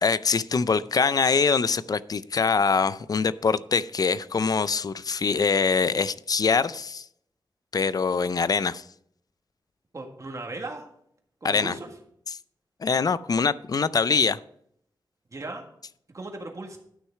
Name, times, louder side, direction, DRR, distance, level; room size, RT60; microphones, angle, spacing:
voice 1, 0.0-7.1 7.7-8.8 11.4-11.7 12.8-14.4, left 5 dB, 50° left, 17 dB, 0.4 m, -24 dB
voice 2, 9.9-10.8 11.4-11.9 15.3-15.6 16.1-16.8, right 2 dB, 40° right, 2 dB, 1.8 m, -36 dB
11.5 x 6.4 x 4.7 m, 0.69 s
wide cardioid pair, 115°, 9 cm